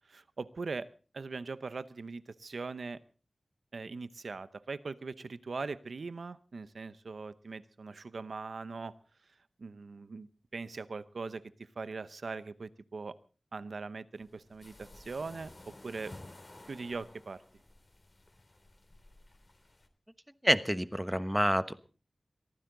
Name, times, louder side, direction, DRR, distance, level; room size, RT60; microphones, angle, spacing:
voice 1, 0.1-0.9 1.1-3.0 3.7-8.9 9.6-13.1 13.5-16.1 16.7-17.4, right 4 dB, 85° right, 14 dB, 0.8 m, -41 dB
sound 1, 14.1-19.9, left 2 dB, 45° left, 3.1 m, -54 dB
voice 2, 20.4-21.7, equal, 5° right, 12 dB, 1.1 m, -28 dB
23.0 x 15.0 x 3.9 m, 0.37 s
wide cardioid pair, 55°, 0 cm